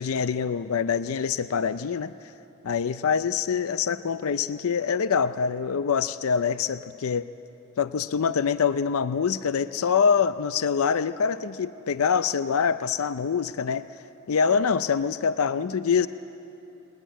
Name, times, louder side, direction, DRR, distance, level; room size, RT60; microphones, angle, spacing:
voice 1, 0.0-2.1 2.6-7.3 7.8-13.9 14.3-16.1, left 6 dB, 75° left, 13 dB, 0.5 m, -25 dB
20.0 x 20.0 x 9.3 m, 3.0 s
head